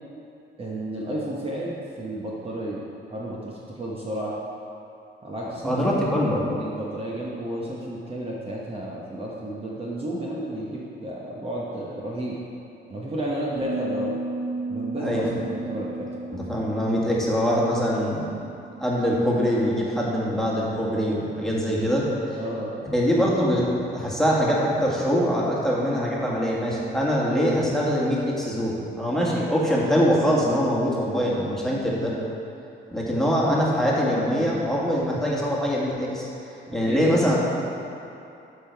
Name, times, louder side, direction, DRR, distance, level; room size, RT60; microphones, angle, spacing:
voice 1, 0.6-2.8 3.1-4.3 5.2-5.8 6.6-12.4 12.9-14.2 14.7-16.1 22.3-22.7 36.9-37.1, right 1 dB, 30° right, -5 dB, 1.1 m, -32 dB
voice 2, 5.6-6.4 15.0-15.3 16.3-18.3 18.8-22.4 22.9-32.1 32.9-37.4, equal, ahead, -5 dB, 1.7 m, -23 dB
sound 1, 13.5-19.8, right 2 dB, 90° right, 1.2 m, -35 dB
11.5 x 3.8 x 4.6 m, 2.7 s
cardioid pair, 90°, 20 cm